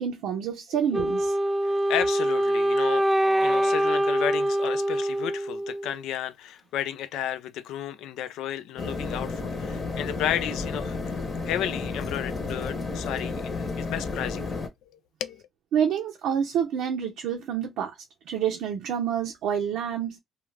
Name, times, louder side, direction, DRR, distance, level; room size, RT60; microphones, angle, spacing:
voice 1, 0.0-1.3 15.7-17.9 18.3-20.2, right 8 dB, 85° right, 0.6 m, -28 dB
Wind instrument woodwind instrument, 0.9-6.0, right 1 dB, 10° right, 0.3 m, -24 dB
voice 2, 1.6-3.0 3.4-11.0 11.4-14.5 15.2-15.4, left 11 dB, 90° left, 0.3 m, -32 dB
sound 1, 8.8-14.7, left 3 dB, 45° left, 0.8 m, -32 dB
2.4 x 2.3 x 3.1 m
cardioid pair, 90°, 0 cm